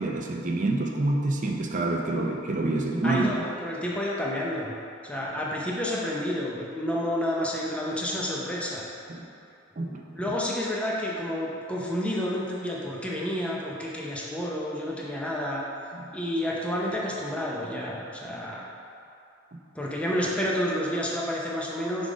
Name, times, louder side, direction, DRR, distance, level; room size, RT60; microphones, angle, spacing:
voice 1, 0.0-3.4 9.1-9.2 9.8-10.0 15.9-16.1, right 2 dB, 40° right, 1 dB, 0.5 m, -27 dB
voice 2, 3.0-4.7 5.0-8.9 10.2-15.6 16.1-18.6 19.7-22.1, left 1 dB, 5° left, -4 dB, 0.6 m, -30 dB
4.9 x 3.9 x 5.0 m, 2.6 s
head